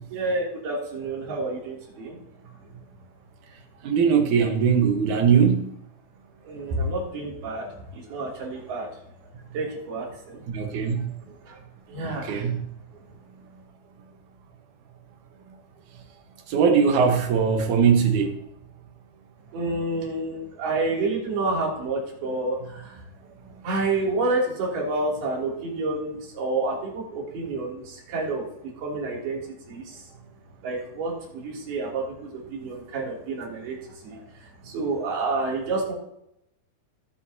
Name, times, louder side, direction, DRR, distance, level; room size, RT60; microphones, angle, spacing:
voice 1, 0.1-2.2 6.4-8.9 9.5-10.4 11.3-11.6 11.9-12.5 19.5-23.0 23.6-28.4 28.8-29.4 29.7-30.0 30.6-33.8 34.0-35.9, right 2 dB, 80° right, -3 dB, 5.0 m, -29 dB
voice 2, 3.8-5.7 10.5-11.1 12.0-12.6 16.5-18.4, right 6 dB, 60° right, 4 dB, 2.5 m, -20 dB
18.5 x 8.1 x 2.9 m, 0.78 s
omnidirectional pair, 4.4 m